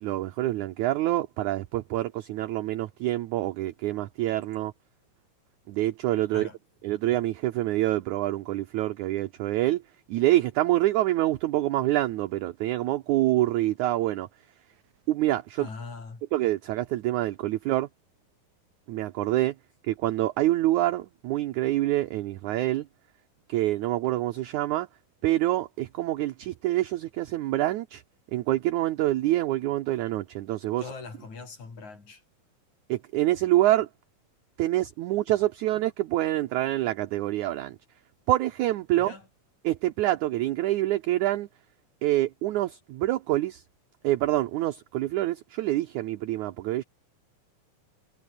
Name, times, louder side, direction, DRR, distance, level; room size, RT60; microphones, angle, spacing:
voice 1, 0.0-4.7 5.7-6.5 6.8-9.8 10.1-14.3 15.1-15.7 16.3-17.9 18.9-19.5 19.8-22.9 23.5-24.9 25.2-28.0 28.3-30.8 32.9-33.9 34.6-37.8 38.3-39.1 39.6-41.5 42.0-43.6 44.0-46.8, right 15 dB, 70° right, 2.0 m, -26 dB
voice 2, 15.6-16.2 30.8-32.2 39.0-39.3, left 4 dB, 55° left, 7.5 m, -41 dB
omnidirectional pair, 4.1 m